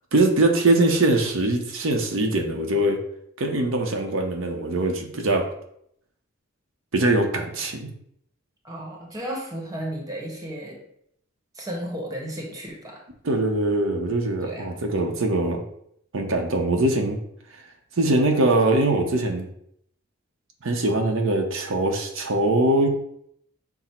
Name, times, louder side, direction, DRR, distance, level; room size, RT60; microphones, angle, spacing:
voice 1, 0.1-3.0 3.4-5.4 6.9-7.9 13.2-15.6 16.1-17.2 18.0-19.4 20.6-22.9, right 2 dB, 90° right, 3 dB, 0.7 m, -22 dB
voice 2, 2.2-2.6 8.6-10.8 11.5-13.0 14.4-14.8, right 1 dB, 20° right, -1 dB, 1.0 m, -34 dB
6.0 x 2.1 x 4.3 m, 0.72 s
head